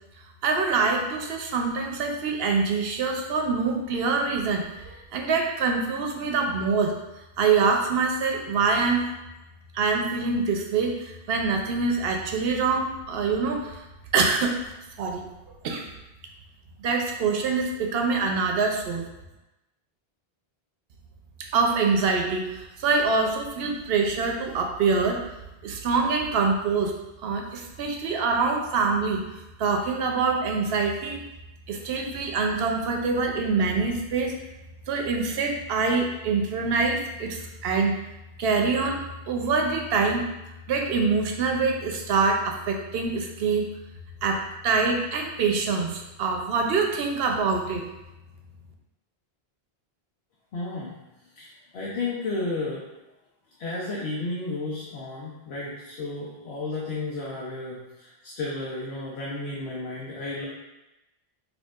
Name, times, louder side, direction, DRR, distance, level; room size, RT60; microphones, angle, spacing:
voice 1, 0.4-6.9 7.4-9.0 9.7-13.8 14.1-15.2 15.6-15.9 16.8-19.1 21.5-25.2 25.6-26.9 27.2-29.2 29.6-31.2 31.7-34.3 34.9-38.0 38.4-40.3 40.7-43.6 44.2-47.8, right 4 dB, 75° right, 2 dB, 0.8 m, -25 dB
voice 2, 50.5-51.0 51.4-52.8 53.6-60.5, left 2 dB, 85° left, -5 dB, 0.9 m, -33 dB
4.4 x 2.7 x 2.3 m, 0.98 s
omnidirectional pair, 1.0 m